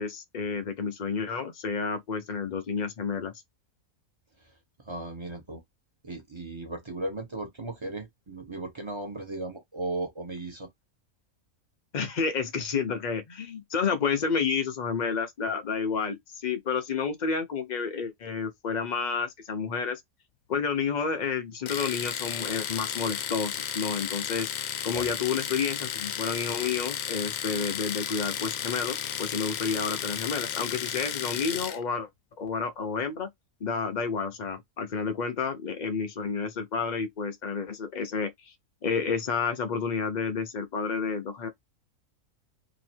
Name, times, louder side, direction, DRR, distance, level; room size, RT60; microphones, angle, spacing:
voice 1, 0.0-3.3 11.9-20.0 20.5-32.1 32.4-33.3 33.6-38.3 38.8-41.5, left 5 dB, 55° left, 0.5 m, -30 dB
voice 2, 4.9-5.6 6.0-10.7 24.9-25.1, right 2 dB, 25° right, 0.8 m, -36 dB
Domestic sounds home sounds, 21.7-31.8, left 9 dB, 80° left, 1.1 m, -33 dB
3.0 x 2.8 x 4.2 m
omnidirectional pair, 1.5 m